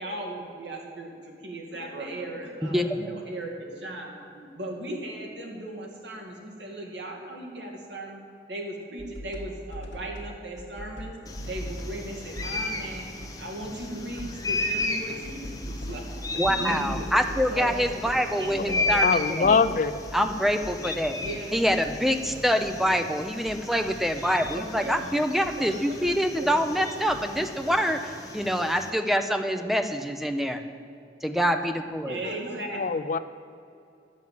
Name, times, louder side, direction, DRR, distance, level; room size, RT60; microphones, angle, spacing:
voice 1, 0.0-8.2 8.5-11.2 11.5-13.0 13.4-16.0 16.3-17.1 17.5-19.1 21.2-21.5 22.8-23.0 24.6-25.1 26.3-26.5 26.8-26.9 32.1-32.8, right 1 dB, 75° right, 0 dB, 2.1 m, -37 dB
voice 2, 2.6-3.0 16.4-19.6 20.1-21.2 21.5-30.6 31.2-32.2, equal, ahead, 7 dB, 0.5 m, -26 dB
sound 1, 9.0-10.3 10.6-23.0 23.3-26.2 26.5-27.4, equal, 80° left, 1.5 m, -42 dB
sound 2, 11.3-28.9, left 2 dB, 20° left, 1.0 m, -35 dB
voice 3, 18.6-19.9 32.8-33.2, left 5 dB, 45° left, 12 dB, 0.4 m, -23 dB
sound 3, 23.6-28.7, equal, 30° right, 2.7 m, -52 dB
10.5 x 7.4 x 7.5 m, 2.5 s
head